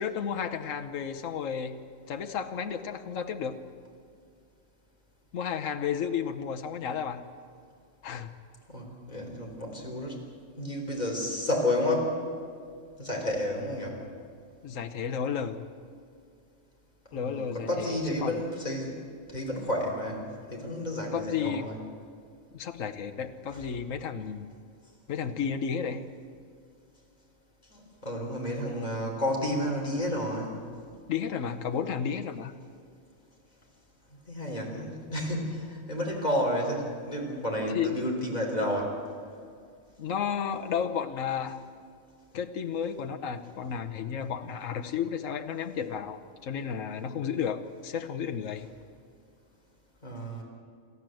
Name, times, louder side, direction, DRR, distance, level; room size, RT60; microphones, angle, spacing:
voice 1, 0.0-1.8 2.1-3.6 5.3-7.2 8.0-8.3 14.6-15.6 17.1-18.4 21.1-21.7 22.5-24.5 25.1-26.0 31.1-32.5 37.7-38.0 40.0-41.6 42.3-48.7, left 7 dB, 75° left, 5 dB, 1.4 m, -32 dB
voice 2, 8.7-10.2 10.6-12.2 13.0-14.0 17.1-19.0 19.3-20.2 20.5-21.8 23.5-23.6 27.7-30.6 34.3-39.0 50.0-50.4, left 1 dB, 30° left, -1 dB, 4.0 m, -31 dB
28.0 x 13.5 x 7.8 m, 2.2 s
omnidirectional pair, 1.4 m